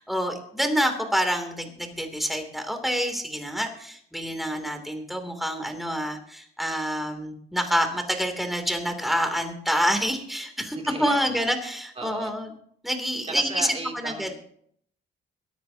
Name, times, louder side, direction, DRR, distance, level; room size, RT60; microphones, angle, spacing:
voice 1, 0.0-12.5 12.8-14.3, equal, ahead, 5 dB, 3.0 m, -27 dB
voice 2, 10.7-11.5 12.0-12.3 13.2-14.3, right 3 dB, 30° right, 3 dB, 2.9 m, -35 dB
23.0 x 10.5 x 2.9 m, 0.65 s
cardioid pair, 90°, 20 cm